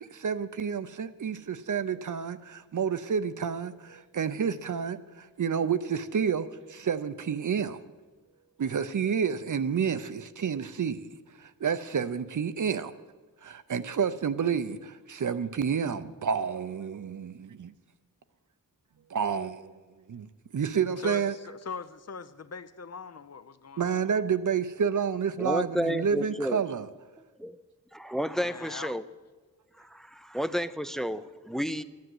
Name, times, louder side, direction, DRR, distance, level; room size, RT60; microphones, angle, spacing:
voice 1, 0.0-7.8 8.6-12.9 13.4-17.7 19.1-19.8 20.1-21.4 23.8-26.9, right 7 dB, 60° right, 12 dB, 0.7 m, -30 dB
voice 2, 21.0-24.0 28.4-29.0, left 5 dB, 50° left, 13 dB, 0.6 m, -41 dB
voice 3, 25.4-26.6 27.4-27.6 27.9-29.0 29.8-31.8, equal, ahead, 13 dB, 0.5 m, -31 dB
12.0 x 10.5 x 7.8 m, 1.3 s
wide cardioid pair, 90°, 34 cm